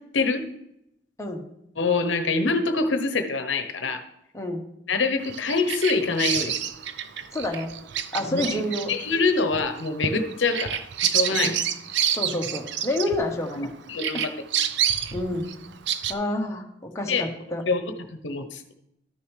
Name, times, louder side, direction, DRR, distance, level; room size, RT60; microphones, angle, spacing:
voice 1, 0.1-0.5 1.8-4.0 4.9-6.6 8.2-8.6 8.9-11.6 13.6-14.3 17.1-17.2 17.7-17.8 18.2-18.6, left 4 dB, 75° left, 8 dB, 0.8 m, -25 dB
Bird vocalization bird call bird song, 5.2-13.7 14.0-16.1, right 9 dB, 70° right, 0.5 m, -28 dB
voice 2, 7.3-7.7 8.1-8.9 11.3-11.5 12.1-13.7 14.1-14.3 15.1-15.5 16.1-17.6, left 1 dB, 15° left, 1 dB, 1.0 m, -28 dB
12.5 x 6.7 x 3.2 m, 0.81 s
head